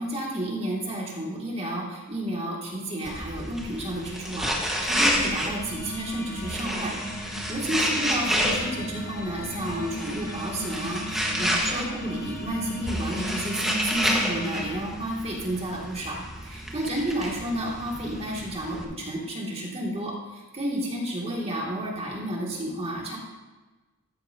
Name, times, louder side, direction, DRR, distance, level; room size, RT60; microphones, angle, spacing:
voice 1, 0.0-6.9 7.3-16.2 16.4-23.2, right 1 dB, 30° right, -3 dB, 2.0 m, -31 dB
sound 1, 3.1-18.9, equal, ahead, 1.2 m, -30 dB
sound 2, 4.9-14.8, equal, 40° left, 1.4 m, -37 dB
13.5 x 9.4 x 2.7 m, 1.2 s
head